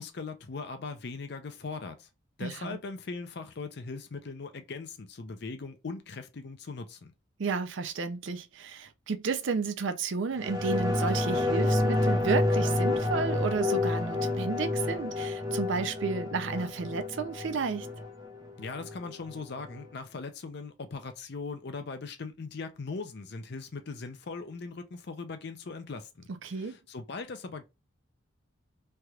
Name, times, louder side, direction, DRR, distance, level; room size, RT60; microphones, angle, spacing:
voice 1, 0.0-2.1 2.4-7.1 18.6-27.6, left 4 dB, 50° left, 0.5 m, -40 dB
voice 2, 2.4-2.8 7.4-17.9 26.4-26.8, right 5 dB, 65° right, 0.5 m, -32 dB
sound 1, 10.4-19.4 19.7-19.8, left 2 dB, 20° right, 0.6 m, -29 dB
3.3 x 2.8 x 2.3 m
head